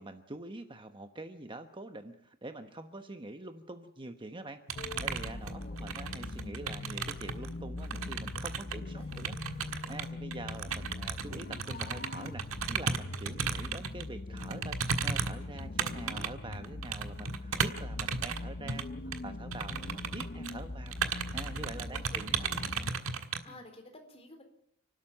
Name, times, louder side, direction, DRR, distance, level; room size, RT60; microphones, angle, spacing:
voice 1, 0.0-20.9 21.3-22.4 23.5-23.6, right 2 dB, 25° right, 7 dB, 1.1 m, -45 dB
sound 1, 4.7-22.9, left 2 dB, 45° left, 0.9 m, -41 dB
sound 2, 4.7-7.5 7.8-14.0 14.4-18.4 18.7-18.8 19.1-19.2 19.5-20.6 20.9-23.4, right 5 dB, 80° right, 1.6 m, -35 dB
voice 2, 5.3-5.9 8.5-8.7 8.9-9.3 10.2-10.4 19.7-20.5 21.6-22.8 23.4-24.4, left 1 dB, 30° left, 5 dB, 4.1 m, -55 dB
29.0 x 12.5 x 8.9 m, 0.74 s
head